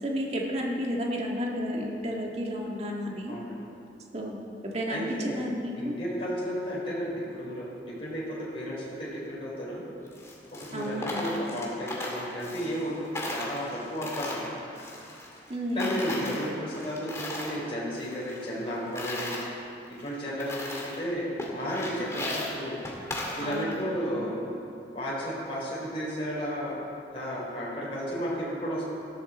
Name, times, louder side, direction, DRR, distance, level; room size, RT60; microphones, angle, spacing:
voice 1, 0.0-3.4 4.1-6.0 10.7-11.2 15.5-16.0 23.4-23.8, equal, 35° right, -1 dB, 1.9 m, -32 dB
voice 2, 3.3-3.7 4.9-5.4 5.8-7.7 8.0-9.8 10.7-14.5 15.7-19.4 20.0-22.7 23.3-24.4 24.9-26.8 27.1-28.9, equal, 30° left, -7 dB, 4.2 m, -33 dB
Coin (dropping), 10.1-12.9 13.1-15.5 15.8-17.6 17.9-19.4 20.0-20.1 20.4-21.0 21.4-23.8, left 1 dB, 15° left, 2.2 m, -36 dB
18.5 x 13.5 x 4.4 m, 2.7 s
head